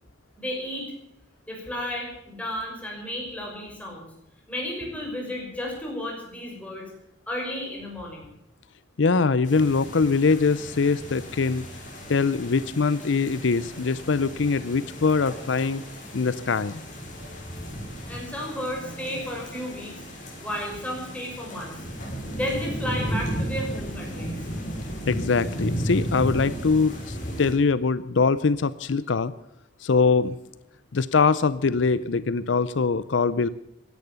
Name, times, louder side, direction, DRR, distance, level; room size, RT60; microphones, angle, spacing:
voice 1, 0.4-0.9 1.5-4.1 4.5-6.9 7.3-8.3 18.1-21.7 22.3-24.4, left 1 dB, 10° left, -1 dB, 5.7 m, -33 dB
voice 2, 9.0-11.6 12.1-15.8 16.1-16.8 25.1-29.3 29.8-30.4 30.9-33.5, left 4 dB, 80° left, 17 dB, 0.6 m, -23 dB
sound 1, 9.4-27.5, equal, 45° left, 5.6 m, -34 dB
16.5 x 10.5 x 6.9 m, 0.81 s
head